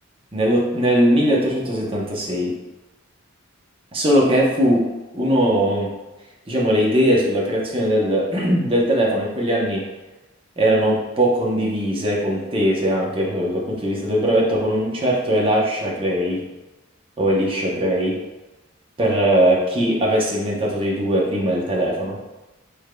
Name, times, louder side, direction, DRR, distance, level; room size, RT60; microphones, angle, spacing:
voice 1, 0.3-2.5 3.9-5.9 6.5-9.8 10.6-16.4 17.2-18.2 19.0-22.2, equal, 25° right, -3 dB, 0.8 m, -20 dB
4.8 x 3.6 x 2.3 m, 1.1 s
head